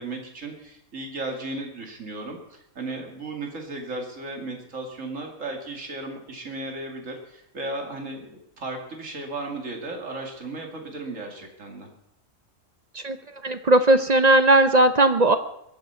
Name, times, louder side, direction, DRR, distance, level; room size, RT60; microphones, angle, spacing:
voice 1, 0.0-11.9, right 2 dB, 80° right, 2 dB, 2.7 m, -35 dB
voice 2, 13.4-15.4, right 2 dB, 45° right, 10 dB, 0.6 m, -17 dB
21.0 x 7.9 x 5.7 m, 0.79 s
omnidirectional pair, 1.3 m